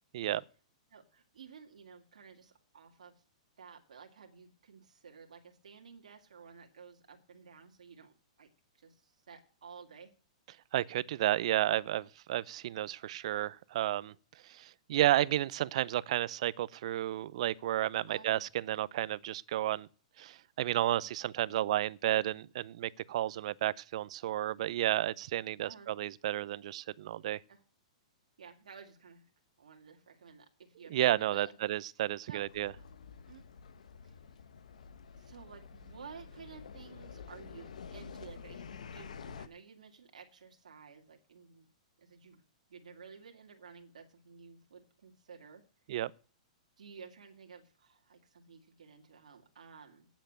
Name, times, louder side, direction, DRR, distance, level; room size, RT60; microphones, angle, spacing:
voice 1, 0.9-3.2 3.6-8.5 8.7-10.1 18.1-18.3 25.6-25.9 27.5-27.6 28.4-29.3 29.6-31.6 32.3-32.4 33.3-33.5 34.0-34.2 35.1-41.7 42.0-42.4 42.7-45.6 46.8-50.1, right 6 dB, 85° right, 2.3 m, -53 dB
voice 2, 10.7-14.1 14.4-19.9 20.2-27.4 30.9-32.7 45.9-46.1, right 13 dB, 60° right, 0.6 m, -32 dB
sound 1, 32.4-39.5, left 6 dB, 85° left, 1.1 m, -49 dB
9.4 x 7.3 x 8.9 m
hypercardioid pair, 135°, 4 cm